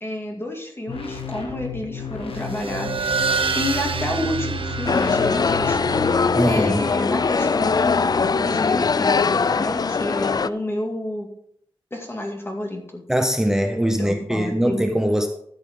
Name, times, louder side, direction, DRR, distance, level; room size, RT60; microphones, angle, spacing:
voice 1, 0.0-3.1 3.5-5.8 6.5-9.1 9.5-11.3 11.9-13.0 14.0-14.8, left 1 dB, 25° left, 1 dB, 2.4 m, -29 dB
sound 1, 0.9-6.1, left 6 dB, 75° left, 1.2 m, -33 dB
sound 2, 2.3-9.3, right 5 dB, 75° right, 0.8 m, -29 dB
sound 3, 4.9-10.5, left 5 dB, 45° left, 0.4 m, -21 dB
voice 2, 6.4-6.9 13.1-15.3, equal, 5° right, 5 dB, 0.8 m, -21 dB
13.0 x 8.2 x 3.8 m, 0.70 s
wide cardioid pair, 100°, 9 cm